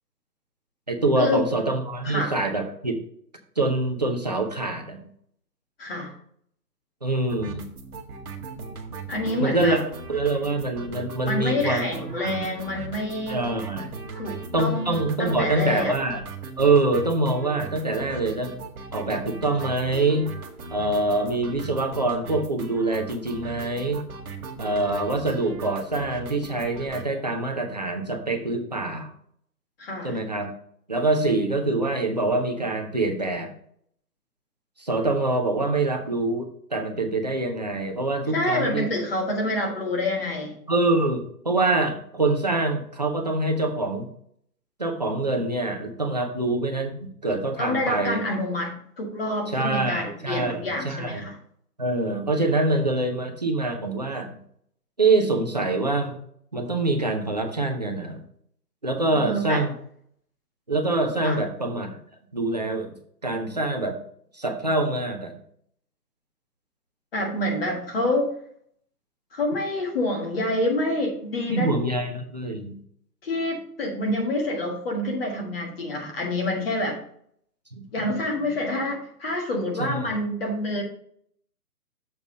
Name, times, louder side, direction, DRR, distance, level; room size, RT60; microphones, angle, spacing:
voice 1, 0.9-3.0 3.6-5.0 7.0-7.6 9.4-9.8 10.1-11.8 12.2-12.6 13.3-13.9 14.5-16.2 16.6-18.6 18.9-20.3 20.7-24.0 24.6-29.1 30.0-30.5 30.9-33.5 34.8-38.9 40.7-44.1 44.8-48.2 49.5-51.3 51.8-54.4 55.0-56.1 56.5-58.2 58.8-59.7 60.7-61.9 62.3-63.0 63.2-64.0 64.3-65.4 71.5-72.8 77.7-77.9 79.8-80.1, right 2 dB, 30° right, 3 dB, 0.5 m, -25 dB
voice 2, 2.0-2.3 5.8-6.1 9.1-9.8 11.2-13.4 14.1-15.9 29.8-30.2 38.3-40.5 47.6-51.3 59.1-59.6 61.2-61.4 67.1-68.3 69.3-71.7 73.2-77.0 77.9-80.8, left 1 dB, 35° left, 1 dB, 1.5 m, -27 dB
sound 1, 7.3-27.0, right 4 dB, 65° right, 1.2 m, -38 dB
6.7 x 3.5 x 6.1 m, 0.65 s
hypercardioid pair, 155°, 48 cm